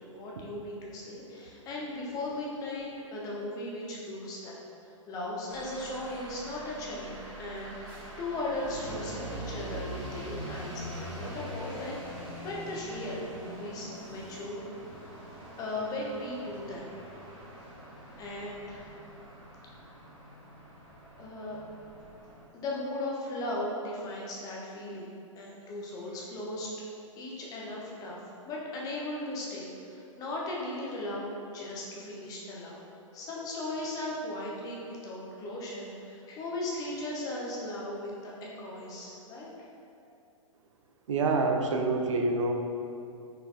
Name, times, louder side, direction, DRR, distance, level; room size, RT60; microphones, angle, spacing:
voice 1, 0.0-14.6 15.0-15.1 15.6-16.9 18.2-18.9 21.2-21.6 22.5-26.7 27.1-32.8 33.1-39.5 40.0-40.1, left 1 dB, 20° left, -4 dB, 0.7 m, -37 dB
sound 1, 5.5-22.4, right 1 dB, 30° right, 1.4 m, -43 dB
voice 2, 41.1-42.5, right 3 dB, 65° right, 2 dB, 0.5 m, -26 dB
4.1 x 3.5 x 2.4 m, 2.6 s
figure-of-eight pair, 115°, 17 cm